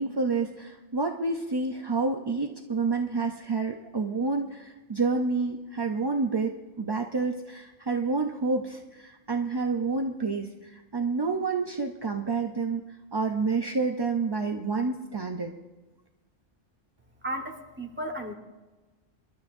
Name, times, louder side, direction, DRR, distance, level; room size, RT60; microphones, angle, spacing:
voice 1, 0.0-15.5, right 4 dB, 30° right, 3 dB, 0.5 m, -29 dB
voice 2, 17.2-18.3, right 1 dB, 10° right, 2 dB, 1.3 m, -34 dB
26.0 x 12.0 x 2.6 m, 1.2 s
omnidirectional pair, 1.2 m